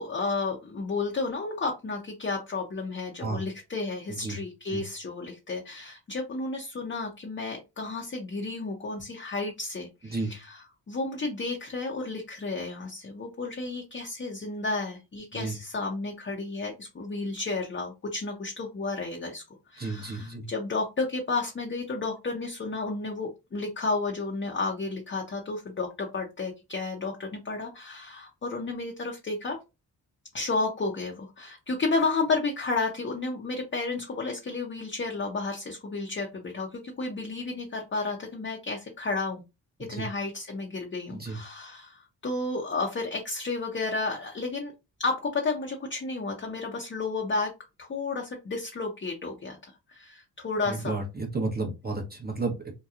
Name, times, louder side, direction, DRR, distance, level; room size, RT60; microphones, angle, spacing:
voice 1, 0.0-19.4 19.7-29.6 30.3-39.4 39.9-44.7 45.0-47.5 47.8-51.0, left 3 dB, 25° left, 1 dB, 0.7 m, -32 dB
voice 2, 4.1-4.4 4.7-4.8 10.1-10.3 15.3-15.6 19.8-20.5 39.8-40.1 41.1-41.4 50.7-52.7, right 3 dB, 20° right, 1 dB, 0.8 m, -32 dB
2.9 x 2.2 x 2.3 m, 0.26 s
supercardioid pair, 60°, 44 cm